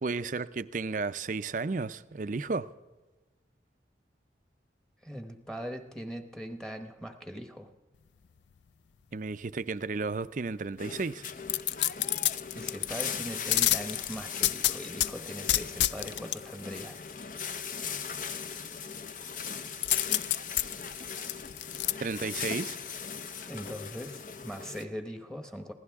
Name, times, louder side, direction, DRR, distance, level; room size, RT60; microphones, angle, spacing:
voice 1, 0.0-2.7 9.1-11.2 22.0-22.8, right 4 dB, 45° right, 0.5 m, -33 dB
voice 2, 5.0-7.7 12.5-17.0 23.4-25.7, equal, 5° left, 1.1 m, -40 dB
sound 1, 10.8-24.8, left 6 dB, 45° left, 0.7 m, -39 dB
sound 2, 11.5-13.0 13.5-15.1 15.5-16.4 19.8-21.9 22.4-22.5, left 15 dB, 75° left, 0.4 m, -27 dB
22.5 x 16.0 x 3.6 m
head